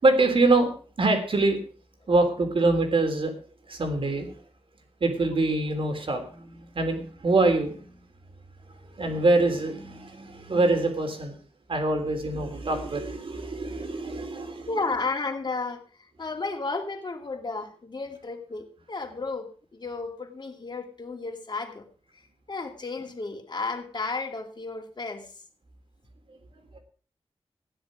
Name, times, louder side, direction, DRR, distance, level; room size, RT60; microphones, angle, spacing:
voice 1, 0.0-0.7 1.0-1.6 2.1-3.3 3.7-4.3 5.0-8.0 9.0-11.4 11.7-14.7 26.3-26.4 26.7-26.8, right 2 dB, 60° right, 5 dB, 3.5 m, -24 dB
voice 2, 14.7-15.8 16.2-21.8 22.5-25.3, left 3 dB, 45° left, 3 dB, 2.7 m, -33 dB
16.0 x 10.5 x 5.0 m, 0.40 s
wide cardioid pair, 95°, 10 cm